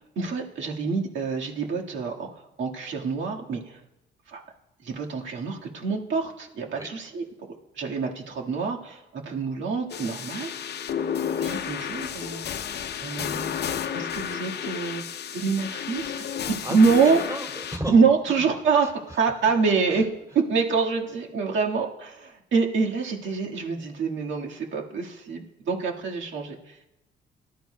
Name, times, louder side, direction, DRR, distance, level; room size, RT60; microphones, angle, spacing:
voice 1, 0.2-2.3 2.6-3.8 4.3-4.4 4.8-7.2 7.8-10.5 11.4-12.5 13.0-13.5 13.9-15.0 15.3-16.3 16.7-17.2 17.9-18.9 19.2-20.0 20.5-26.6, right 5 dB, 70° right, 0 dB, 1.8 m, -26 dB
sound 1, 9.9-17.8, left 8 dB, 55° left, 0.7 m, -32 dB
voice 2, 16.4-17.9 18.3-18.5 18.8-19.2 19.9-20.0, right 1 dB, 15° right, 0 dB, 3.1 m, -36 dB
19.0 x 12.0 x 2.2 m, 0.93 s
cardioid pair, 90°, 20 cm